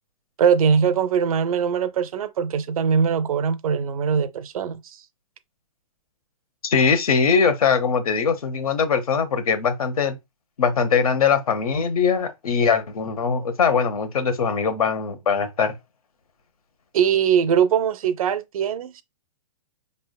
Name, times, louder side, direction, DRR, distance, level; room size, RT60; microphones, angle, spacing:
voice 1, 0.4-5.0 16.9-19.0, right 7 dB, 75° right, 0.5 m, -21 dB
voice 2, 6.6-10.2 10.6-15.8, left 6 dB, 85° left, 1.0 m, -21 dB
5.3 x 3.3 x 2.2 m
hypercardioid pair, 155°, 18 cm